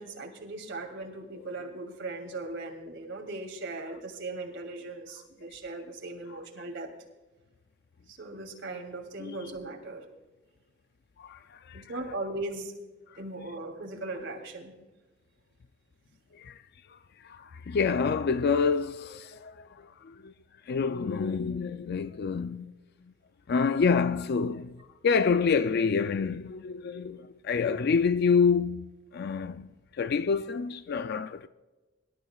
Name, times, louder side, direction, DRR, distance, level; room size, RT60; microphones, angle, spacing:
voice 1, 0.0-6.9 8.1-10.0 11.7-12.7 13.1-14.7, right 2 dB, 65° right, 2.9 m, -38 dB
voice 2, 11.2-11.8 16.3-16.6 16.9-20.3 20.7-22.7 23.5-31.5, left 5 dB, 55° left, 0.4 m, -28 dB
25.5 x 13.0 x 2.4 m
head